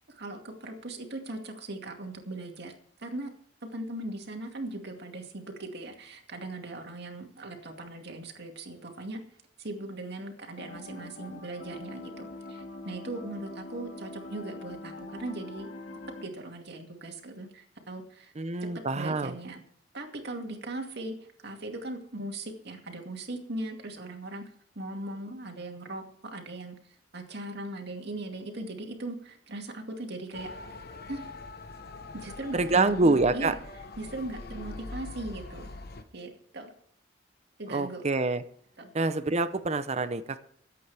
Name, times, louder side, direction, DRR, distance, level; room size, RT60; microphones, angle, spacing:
voice 1, 0.0-2.7 3.0-3.3 3.6-9.2 9.6-15.7 16.2-18.3 18.7-19.6 19.9-24.5 24.8-26.8 27.1-30.5 31.0-31.3 32.1-33.5 34.0-35.7 36.1-36.7 37.6-38.0 38.8-38.9, right 2 dB, 60° right, 3 dB, 2.3 m, -39 dB
sound 1, 10.6-16.2, left 2 dB, 85° left, 2.5 m, -43 dB
voice 2, 18.4-19.3 32.5-33.5 37.7-38.4 38.9-40.4, right 3 dB, 35° right, 12 dB, 0.7 m, -26 dB
Motor vehicle (road) / Siren, 30.3-36.0, left 3 dB, 55° left, 1.1 m, -43 dB
24.0 x 8.5 x 3.5 m, 0.67 s
head